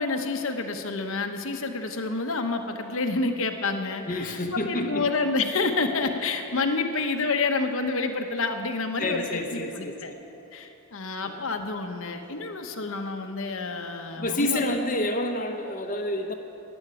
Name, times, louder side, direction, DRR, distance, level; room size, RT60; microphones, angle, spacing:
voice 1, 0.0-10.1 10.5-14.8, left 3 dB, 70° left, 5 dB, 1.0 m, -29 dB
voice 2, 4.1-5.1 9.0-9.9 11.2-11.5 14.2-16.3, left 1 dB, 35° left, 3 dB, 0.8 m, -28 dB
12.0 x 8.8 x 9.8 m, 2.8 s
head